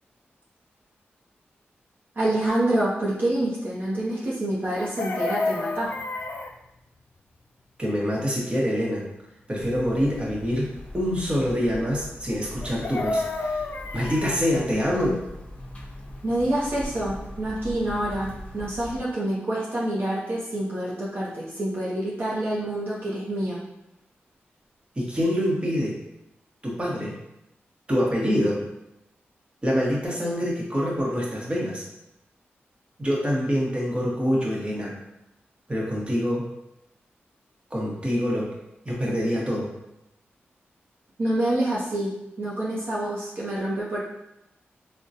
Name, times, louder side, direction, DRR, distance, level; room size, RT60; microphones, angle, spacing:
voice 1, 2.2-6.0 16.2-23.6 41.2-44.0, right 1 dB, 55° right, -7 dB, 0.7 m, -27 dB
Chicken rooster, 4.7-6.5 12.6-14.4 16.7-16.8 17.0-17.3, left 2 dB, 55° left, 0.3 m, -30 dB
voice 2, 7.8-9.1 9.5-13.6 13.9-15.2 25.0-26.0 26.6-27.2 27.9-28.6 29.6-31.8 33.0-35.0 35.7-36.4 37.7-38.5 38.8-39.7, equal, 25° right, -4 dB, 1.1 m, -25 dB
sound 1, 9.6-19.0, left 1 dB, 25° left, 0.7 m, -41 dB
3.7 x 2.2 x 2.7 m, 0.87 s
cardioid pair, 55°, 4 cm